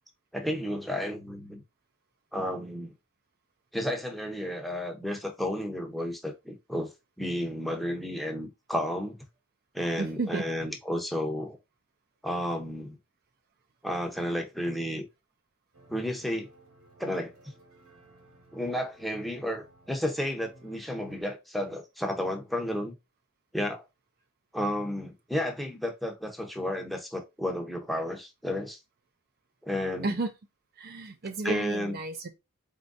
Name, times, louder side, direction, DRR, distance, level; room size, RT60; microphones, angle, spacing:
voice 1, 0.3-1.6 2.3-2.9 3.7-6.9 7.2-9.2 9.7-11.6 12.2-13.0 13.8-15.1 15.9-16.5 17.0-17.3 18.5-22.9 23.5-23.8 24.5-28.8 29.6-30.2 31.4-32.0, left 1 dB, ahead, 0.8 m, -32 dB
voice 2, 10.0-10.5 30.0-30.3 30.8-32.3, right 3 dB, 45° right, 0.5 m, -32 dB
sound 1, 15.7-21.2, right 2 dB, 80° right, 2.0 m, -57 dB
4.4 x 3.6 x 2.6 m
head